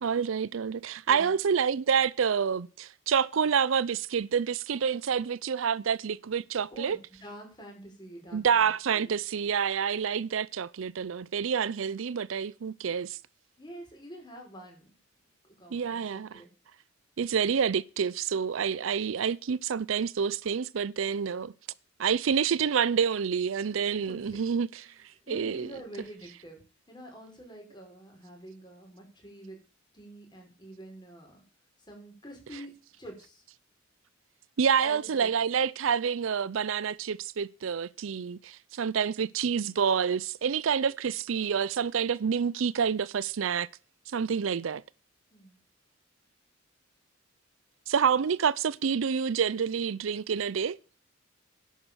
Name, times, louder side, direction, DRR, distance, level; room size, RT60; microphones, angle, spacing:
voice 1, 0.0-7.0 8.3-13.2 15.7-16.4 17.2-21.5 22.0-24.7 25.3-25.7 34.6-43.7 44.1-44.8 47.9-50.8, right 7 dB, 70° right, 0.5 m, -28 dB
voice 2, 6.7-9.1 13.6-14.9 15.6-16.5 24.0-24.4 25.3-26.6 26.9-29.6 29.9-31.4 31.8-33.4 34.8-35.3 45.3-45.6, right 1 dB, 20° left, 5.4 m, -47 dB
11.0 x 8.2 x 7.1 m
head